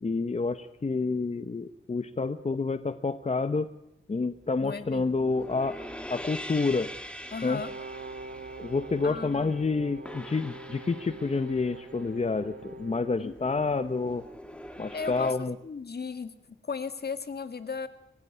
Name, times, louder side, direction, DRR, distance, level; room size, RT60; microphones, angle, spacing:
voice 1, 0.0-3.7 4.1-5.8 6.1-6.9 7.4-7.6 8.6-14.2 14.8-15.6, left 4 dB, 35° left, 11 dB, 0.9 m, -28 dB
sound 1, 4.4-15.3, equal, 5° left, 2.4 m, -44 dB
voice 2, 4.6-5.1 7.3-7.7 9.0-9.6 13.2-13.3 14.9-15.3 15.6-17.9, left 5 dB, 50° left, 11 dB, 1.7 m, -36 dB
Brass instrument, 7.4-13.3, right 4 dB, 60° right, 2.0 m, -44 dB
25.5 x 16.0 x 9.6 m, 0.81 s
wide cardioid pair, 120°, 20 cm